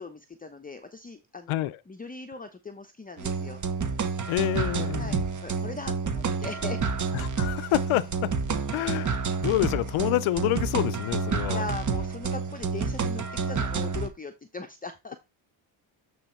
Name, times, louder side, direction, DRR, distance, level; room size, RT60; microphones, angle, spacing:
voice 1, 0.0-3.6 5.0-6.8 9.4-9.5 11.5-15.2, left 3 dB, 20° left, 0.8 m, -39 dB
sound 1, 3.2-14.1, right 5 dB, 40° right, 1.3 m, -29 dB
voice 2, 4.3-5.2 7.1-8.3 8.7-11.6, left 16 dB, 80° left, 0.7 m, -28 dB
8.9 x 3.3 x 4.4 m
cardioid pair, 85°, 48 cm